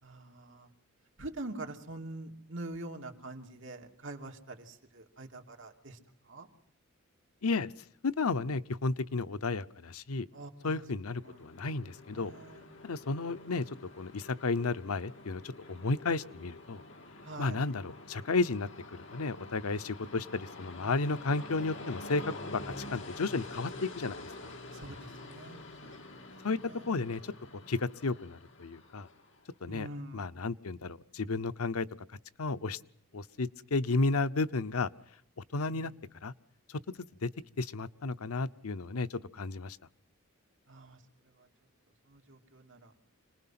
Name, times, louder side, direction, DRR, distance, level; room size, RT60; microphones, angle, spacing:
voice 1, 0.0-0.7 1.2-6.0 6.3-6.5 10.3-10.8 11.2-11.5 12.2-12.8 17.2-17.6 24.7-26.9 29.6-30.4 35.6-36.0 40.7-41.0 41.4-41.5 42.1-42.9, right 2 dB, 55° right, 3 dB, 2.8 m, -45 dB
voice 2, 7.4-7.7 8.0-10.3 10.6-12.3 12.8-13.6 14.0-16.8 17.4-22.6 22.9-24.5 26.4-26.6 26.9-27.3 27.7-29.1 29.6-29.9 30.1-31.9 32.4-32.8 33.1-34.9 35.5-35.9 36.2-36.3 36.7-36.8 37.2-37.3 37.6-39.8, left 3 dB, 85° left, 14 dB, 0.8 m, -33 dB
Train, 10.8-29.5, left 2 dB, 55° left, 2.2 m, -47 dB
26.5 x 19.5 x 5.9 m, 0.72 s
head